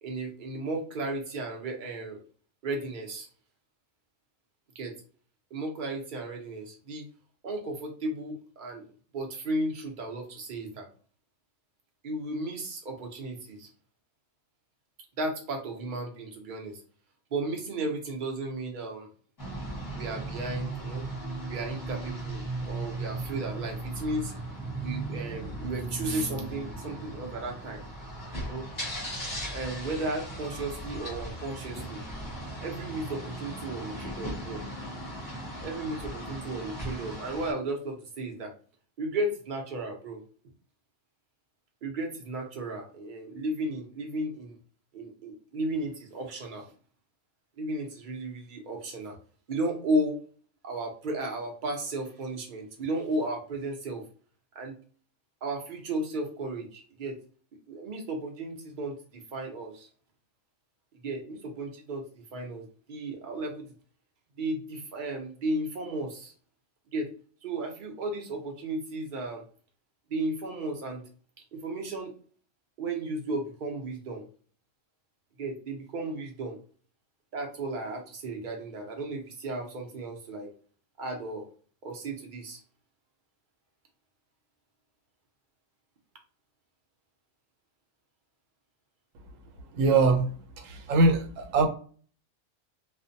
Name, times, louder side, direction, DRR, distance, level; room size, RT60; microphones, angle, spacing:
voice 1, 0.0-2.2 2.6-3.3 4.7-4.9 5.5-7.0 7.4-8.8 9.1-10.9 12.0-13.7 15.2-16.8 17.3-19.1 19.9-21.0 21.5-24.3 24.7-27.8 28.4-28.7 29.5-32.0 32.6-34.6 35.6-38.5 39.0-40.2 41.8-44.6 44.9-46.7 47.6-49.2 49.5-50.2 50.6-54.1 54.5-54.8 55.4-57.2 57.7-59.9 61.0-62.0 62.3-63.7 64.4-66.3 66.9-67.1 67.4-69.4 70.1-71.0 71.5-72.1 72.8-74.3 75.4-76.6 77.3-80.5 81.0-81.5 81.8-82.6, right 2 dB, 50° right, 0.6 m, -34 dB
sound 1, 19.4-37.5, right 2 dB, 20° left, 0.8 m, -37 dB
voice 2, 89.7-91.7, right 3 dB, 80° right, 1.0 m, -23 dB
2.4 x 2.1 x 2.6 m
omnidirectional pair, 1.3 m